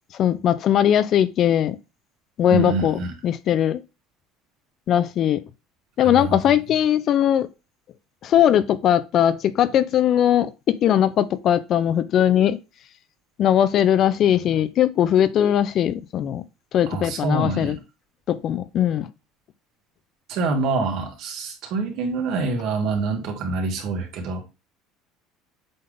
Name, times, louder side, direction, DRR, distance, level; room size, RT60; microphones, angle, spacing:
voice 1, 0.1-1.8 2.4-3.8 4.9-5.4 6.0-7.5 8.2-12.6 13.4-16.4 16.7-17.8 18.3-19.1, left 10 dB, 50° left, 0.6 m, -20 dB
voice 2, 2.5-3.1 6.0-6.6 16.9-17.7 20.3-24.4, right 4 dB, 60° right, 2.4 m, -26 dB
7.8 x 3.4 x 3.9 m
cardioid pair, 125°, 0 cm